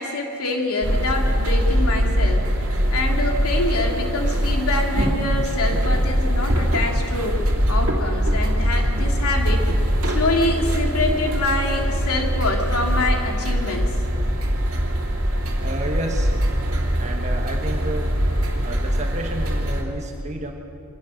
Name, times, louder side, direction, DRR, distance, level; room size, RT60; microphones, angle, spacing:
voice 1, 0.0-2.5 2.9-9.7 10.1-13.9, left 2 dB, 80° left, 2 dB, 2.6 m, -25 dB
sound 1, 0.8-19.8, equal, 65° right, 2.8 m, -22 dB
voice 2, 15.6-16.3 16.9-18.1 18.6-20.5, right 1 dB, 30° right, 2 dB, 1.5 m, -31 dB
24.0 x 17.0 x 6.5 m, 2.6 s
head